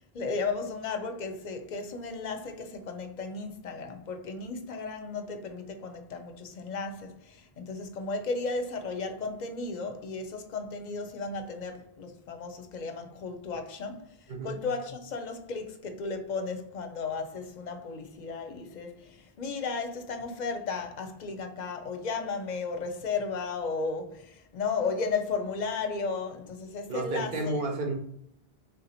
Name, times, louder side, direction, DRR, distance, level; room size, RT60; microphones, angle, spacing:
voice 1, 0.1-27.7, left 4 dB, 55° left, 0.6 m, -34 dB
voice 2, 26.9-27.9, right 2 dB, 60° right, 1.0 m, -31 dB
3.6 x 2.8 x 4.1 m
omnidirectional pair, 1.0 m